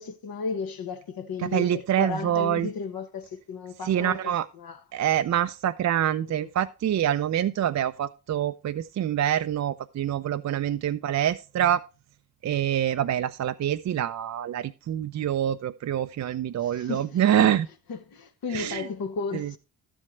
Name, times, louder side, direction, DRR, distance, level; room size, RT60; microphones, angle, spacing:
voice 1, 0.0-4.8 6.3-6.5 16.6-17.5 17.9-19.6, left 5 dB, 55° left, 1.2 m, -34 dB
voice 2, 1.4-2.7 3.8-4.5 4.9-11.8 12.4-17.7 18.5-18.9 19.3-19.5, right 10 dB, 45° right, 0.5 m, -26 dB
12.0 x 7.8 x 3.2 m
supercardioid pair, 50°, 42 cm